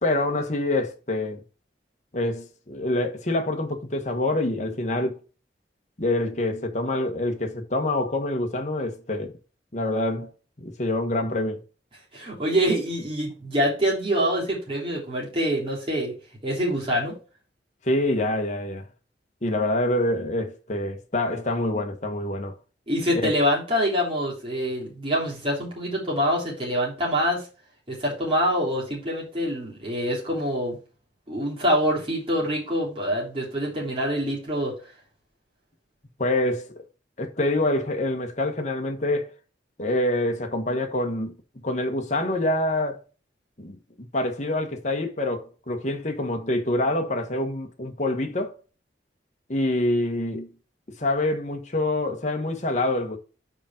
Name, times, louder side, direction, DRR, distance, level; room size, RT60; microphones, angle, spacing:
voice 1, 0.0-1.4 2.1-5.2 6.0-9.3 9.7-10.3 10.6-11.6 17.8-18.9 19.4-22.6 23.1-23.3 36.2-36.8 37.2-39.3 39.8-41.3 41.6-43.0 43.6-43.8 44.1-48.6 49.5-50.5 51.0-53.2, left 1 dB, 40° left, 1.3 m, -26 dB
voice 2, 12.1-16.1 16.4-17.1 22.9-27.5 27.9-30.8 31.3-34.7, equal, 30° right, 3.5 m, -25 dB
5.2 x 5.0 x 5.8 m
head